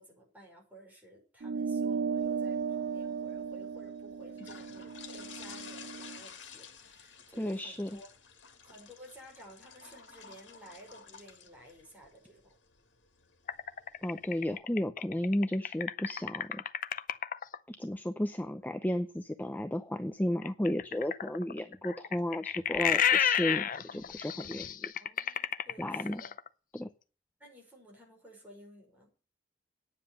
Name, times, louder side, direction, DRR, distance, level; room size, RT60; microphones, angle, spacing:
voice 1, 0.0-8.1 8.6-12.6 25.0-26.4 27.4-29.1, right 1 dB, 10° right, -2 dB, 5.6 m, -54 dB
sound 1, 1.4-6.2, right 6 dB, 60° right, 0.6 m, -35 dB
sound 2, 2.2-14.6, left 6 dB, 90° left, 1.9 m, -53 dB
voice 2, 7.4-7.9 14.0-16.6 17.7-24.9 25.8-26.2 26.7-26.9, left 1 dB, 10° left, 9 dB, 0.7 m, -33 dB
sound 3, 13.5-17.6 20.4-26.5, left 9 dB, 50° left, 0.6 m, -31 dB
9.9 x 7.4 x 8.1 m, 0.36 s
head